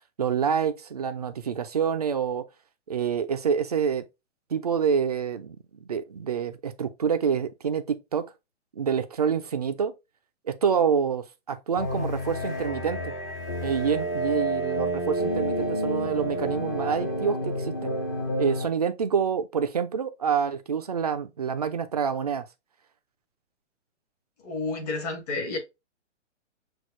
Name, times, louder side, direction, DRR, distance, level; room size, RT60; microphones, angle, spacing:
voice 1, 0.2-2.5 2.9-4.1 4.5-8.3 8.7-9.9 10.5-13.1 13.6-17.9 18.4-22.5, right 7 dB, 35° right, 0.4 m, -27 dB
sound 1, 11.8-18.7, right 1 dB, 15° left, 0.6 m, -29 dB
voice 2, 24.4-25.6, left 3 dB, 35° left, 1.6 m, -30 dB
6.2 x 2.4 x 3.6 m
hypercardioid pair, 170°, 36 cm